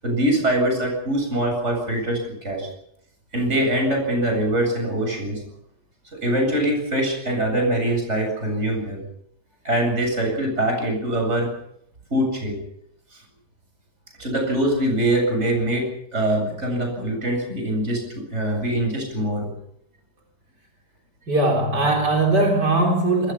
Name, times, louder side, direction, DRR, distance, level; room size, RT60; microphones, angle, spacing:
voice 1, 0.0-2.7 3.3-5.4 6.1-9.0 9.6-11.5 12.1-12.6 14.2-19.5, right 1 dB, 40° right, 2 dB, 8.4 m, -23 dB
voice 2, 21.3-23.3, right 2 dB, 80° right, 1 dB, 4.3 m, -20 dB
27.0 x 20.5 x 6.0 m, 0.71 s
omnidirectional pair, 1.8 m